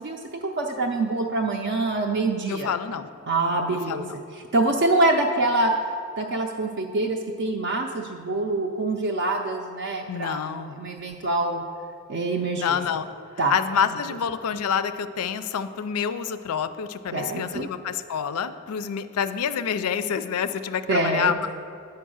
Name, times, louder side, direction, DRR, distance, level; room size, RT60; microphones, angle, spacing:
voice 1, 0.0-2.7 3.3-4.0 4.5-5.7 6.2-11.6 12.1-12.8 13.4-13.6 17.1-17.7 20.9-21.5, right 2 dB, 55° right, 0 dB, 0.4 m, -25 dB
voice 2, 2.5-3.1 3.9-4.1 10.1-10.8 12.6-13.1 13.5-21.5, left 7 dB, 85° left, 12 dB, 0.4 m, -27 dB
8.5 x 4.6 x 6.2 m, 2.3 s
head